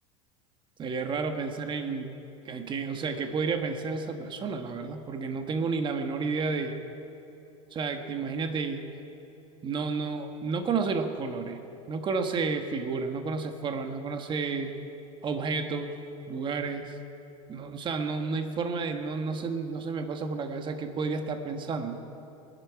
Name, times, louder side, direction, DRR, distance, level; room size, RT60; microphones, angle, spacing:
voice 1, 0.8-2.1 2.4-6.8 7.7-8.8 9.6-11.6 11.9-14.7 15.2-17.0 17.5-22.0, right 4 dB, 30° right, 6 dB, 1.3 m, -31 dB
22.0 x 11.0 x 4.7 m, 2.9 s
supercardioid pair, 125°, 17 cm